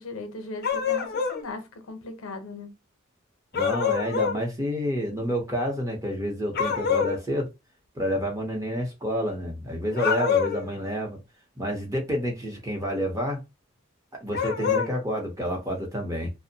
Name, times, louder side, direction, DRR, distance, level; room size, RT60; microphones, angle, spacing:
voice 1, 0.0-2.7, left 2 dB, 90° left, 0.6 m, -38 dB
sound 1, 0.6-1.4 3.5-4.4 6.6-7.2 9.9-10.7 14.3-14.9, left 7 dB, 50° left, 0.5 m, -25 dB
voice 2, 3.5-7.5 8.0-11.2 11.6-13.4 14.2-16.3, equal, 15° right, 0.7 m, -29 dB
2.6 x 2.0 x 2.7 m
head